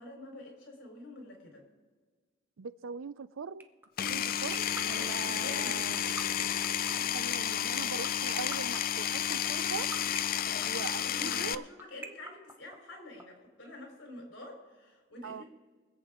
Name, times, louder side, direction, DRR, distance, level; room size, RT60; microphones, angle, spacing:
voice 1, 0.0-1.6 4.9-5.8 10.4-15.4, left 1 dB, 65° left, 4.1 m, -47 dB
voice 2, 2.6-3.7 4.1-6.0 7.1-9.9 10.6-11.7 15.2-15.4, right 6 dB, 85° right, 0.5 m, -41 dB
sound 1, 3.6-13.2, right 2 dB, 10° right, 0.8 m, -41 dB
Power tool, 4.0-11.5, left 10 dB, 45° left, 0.4 m, -31 dB
24.0 x 8.1 x 3.8 m
head